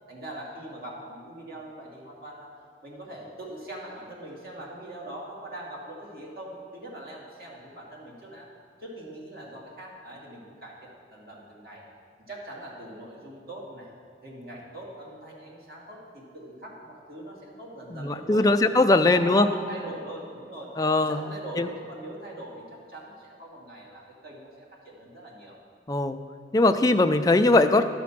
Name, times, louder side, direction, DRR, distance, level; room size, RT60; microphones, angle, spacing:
voice 1, 0.1-2.5 2.8-8.5 8.8-11.8 12.3-13.9 14.2-18.5 18.8-20.7 21.0-25.6, right 1 dB, 55° right, -4 dB, 2.4 m, -42 dB
voice 2, 17.9-19.5 20.8-21.2 21.6-21.7 25.9-26.2 26.5-27.8, left 2 dB, 20° left, 7 dB, 0.4 m, -20 dB
13.0 x 6.1 x 5.9 m, 2.3 s
head